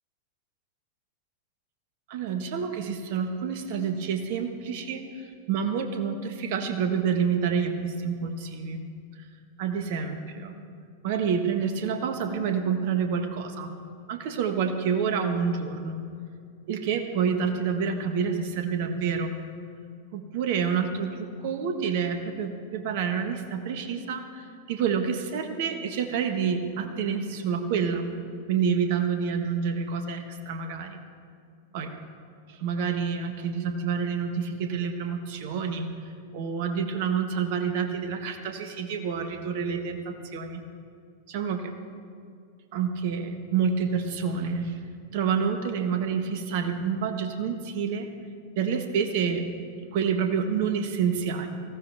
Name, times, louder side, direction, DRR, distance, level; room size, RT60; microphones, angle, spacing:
voice 1, 2.1-5.0 5.5-8.8 9.6-10.6 11.0-13.7 14.1-16.0 16.7-19.4 20.1-28.1 28.5-31.0 31.7-31.9 32.5-35.9 36.3-40.6 41.3-41.7 42.7-44.8 45.1-48.1 48.5-49.5 49.9-51.5, right 6 dB, 55° right, 6 dB, 1.4 m, -28 dB
19.0 x 15.0 x 3.5 m, 2.3 s
figure-of-eight pair, 95°, 0 cm